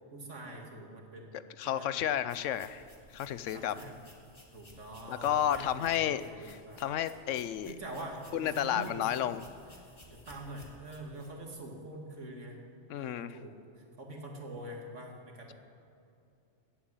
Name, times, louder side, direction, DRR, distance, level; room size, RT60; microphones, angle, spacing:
voice 1, 0.1-1.9 3.5-4.0 4.5-6.8 7.6-9.4 9.8-12.6 12.9-15.5, right 1 dB, 80° right, 1 dB, 2.5 m, -45 dB
voice 2, 1.6-2.8 3.1-3.7 5.1-7.7 8.3-9.4 12.9-13.4, left 10 dB, 90° left, 14 dB, 1.0 m, -32 dB
sound 1, 2.3-11.3, equal, 25° left, 2.0 m, -56 dB
14.5 x 9.3 x 8.9 m, 2.6 s
omnidirectional pair, 1.2 m